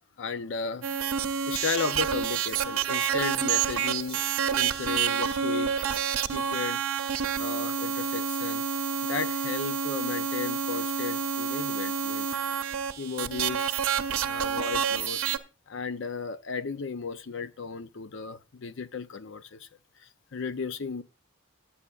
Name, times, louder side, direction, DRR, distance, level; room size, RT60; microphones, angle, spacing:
voice 1, 0.2-0.9 1.5-6.8 7.4-8.7 9.0-12.4 13.0-13.8 14.2-15.2 15.7-19.7 20.0-21.0, left 5 dB, 60° left, 0.5 m, -35 dB
sound 1, 0.8-15.4, right 7 dB, 85° right, 0.7 m, -29 dB
17.5 x 8.5 x 2.4 m
head